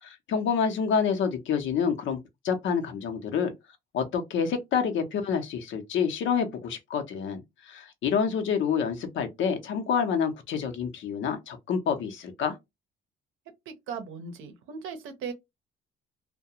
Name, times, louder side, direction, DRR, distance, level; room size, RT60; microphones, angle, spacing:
voice 1, 0.0-2.2 2.4-3.5 3.9-12.6, left 6 dB, 75° left, 0.7 m, -28 dB
voice 2, 13.7-15.3, right 6 dB, 90° right, 0.6 m, -38 dB
2.3 x 2.1 x 2.7 m
cardioid pair, 90°, 20 cm